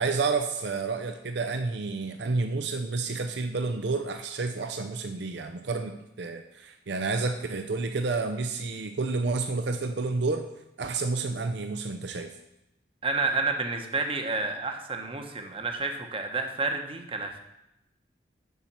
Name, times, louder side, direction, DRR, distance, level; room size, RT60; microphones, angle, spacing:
voice 1, 0.0-10.5 10.8-12.3, right 3 dB, 65° right, 7 dB, 0.6 m, -30 dB
voice 2, 13.0-17.4, right 3 dB, 30° right, 4 dB, 1.0 m, -30 dB
7.2 x 5.7 x 7.2 m, 0.88 s
head